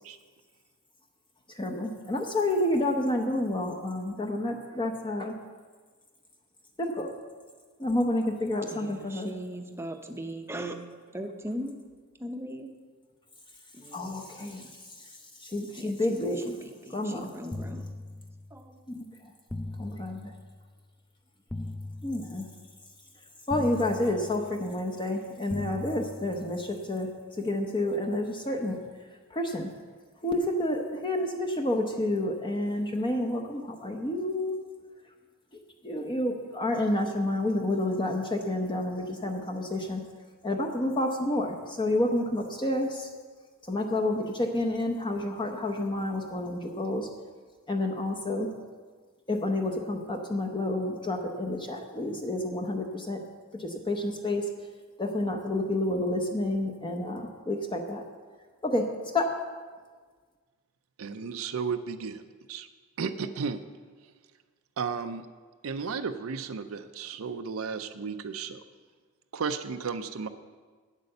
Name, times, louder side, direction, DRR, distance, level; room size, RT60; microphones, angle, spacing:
voice 1, 1.5-5.3 6.8-7.1 7.8-9.3 13.9-14.6 15.4-16.4 16.9-17.3 18.9-19.0 19.8-20.3 22.0-22.4 23.5-27.1 27.4-28.8 29.3-29.7 30.2-34.6 35.8-40.0 40.4-43.1 43.7-47.1 47.7-48.5 49.3-53.2 53.6-54.5 55.0-58.0 58.6-58.8 59.1-59.3, left 1 dB, 20° left, 2 dB, 0.8 m, -29 dB
voice 2, 8.7-10.8 11.1-11.7 12.2-12.7 13.7-14.3 14.6-14.7 15.8-16.2 16.4-17.9 18.5-18.8, right 1 dB, 10° right, 5 dB, 0.7 m, -39 dB
sound 1, 17.5-18.7 19.5-20.7 21.5-22.7 23.5-24.7 25.5-26.7, left 1 dB, 5° left, 0.3 m, -40 dB
voice 3, 61.0-62.2 62.5-62.7 63.0-63.6 64.8-65.3 65.6-68.6 69.3-70.3, right 5 dB, 70° right, 9 dB, 0.5 m, -33 dB
8.9 x 8.2 x 6.6 m, 1.5 s
head